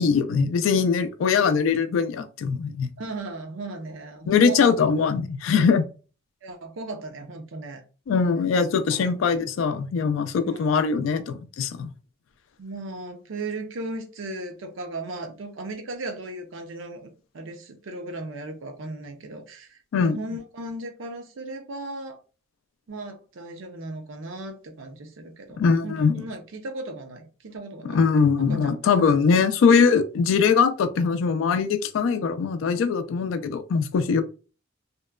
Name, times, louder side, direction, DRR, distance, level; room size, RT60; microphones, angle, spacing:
voice 1, 0.0-2.9 4.3-5.9 8.1-11.9 19.9-20.2 25.6-26.2 27.8-34.2, left 5 dB, 75° left, 0.3 m, -21 dB
voice 2, 3.0-4.7 6.4-7.8 8.9-9.1 10.4-10.9 12.6-22.2 22.9-29.4, right 2 dB, 75° right, 0.6 m, -37 dB
2.8 x 2.1 x 2.2 m
head